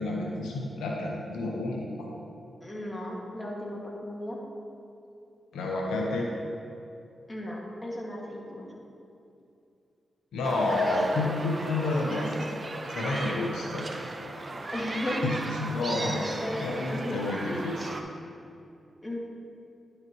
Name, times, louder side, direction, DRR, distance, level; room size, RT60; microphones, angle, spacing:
voice 1, 0.0-2.1 5.5-6.3 10.3-14.0 14.6-14.7 15.2-17.9, left 2 dB, 90° left, -1 dB, 0.7 m, -30 dB
voice 2, 2.6-4.4 7.3-8.7 12.2-12.4 14.6-15.3 16.1-17.2 17.8-17.9 19.0-19.2, left 1 dB, 25° left, -3 dB, 1.9 m, -35 dB
sound 1, 10.4-18.0, right 2 dB, 40° right, 0.7 m, -36 dB
11.0 x 6.4 x 3.0 m, 2.6 s
supercardioid pair, 50°, 0 cm